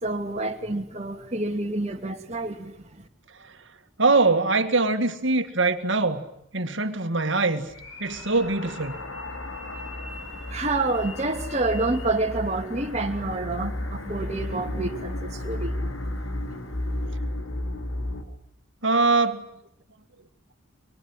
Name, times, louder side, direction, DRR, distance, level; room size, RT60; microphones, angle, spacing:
voice 1, 0.0-3.0 10.5-15.7, right 2 dB, 35° right, 2.6 m, -28 dB
voice 2, 4.0-6.2 6.5-7.7 8.0-9.0 18.8-19.4, right 3 dB, 60° right, 2.2 m, -22 dB
sound 1, 7.6-12.4, left 1 dB, 70° left, 6.0 m, -45 dB
sound 2, 7.7-18.2, left 1 dB, 85° left, 3.1 m, -33 dB
24.5 x 24.0 x 9.9 m
head